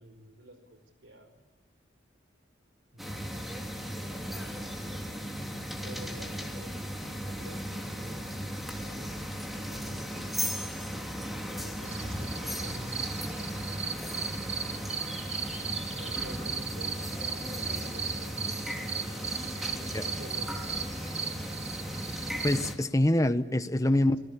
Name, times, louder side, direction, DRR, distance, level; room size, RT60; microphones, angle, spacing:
voice 1, 0.0-1.4 2.9-3.6 5.8-8.4 8.7-10.5 11.5-14.4 16.0-18.5 19.6-20.8 23.8-24.2, right 1 dB, 85° right, 4.8 m, -50 dB
sound 1, 3.0-22.8, equal, ahead, 3.4 m, -36 dB
sound 2, 11.8-22.7, right 6 dB, 35° right, 1.8 m, -37 dB
voice 2, 22.4-24.2, left 1 dB, 20° left, 1.1 m, -25 dB
27.5 x 19.5 x 8.6 m
head